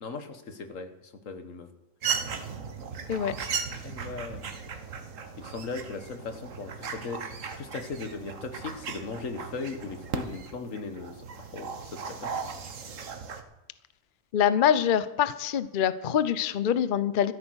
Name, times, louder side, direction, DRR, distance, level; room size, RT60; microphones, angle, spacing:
voice 1, 0.0-1.7 3.8-4.5 5.4-7.2 7.5-12.8, left 4 dB, 85° left, 8 dB, 1.7 m, -38 dB
sound 1, 2.0-13.4, right 6 dB, 80° right, 1.6 m, -37 dB
voice 2, 14.3-17.3, left 9 dB, 50° left, 14 dB, 0.7 m, -25 dB
14.0 x 12.5 x 6.4 m, 1.0 s
omnidirectional pair, 1.3 m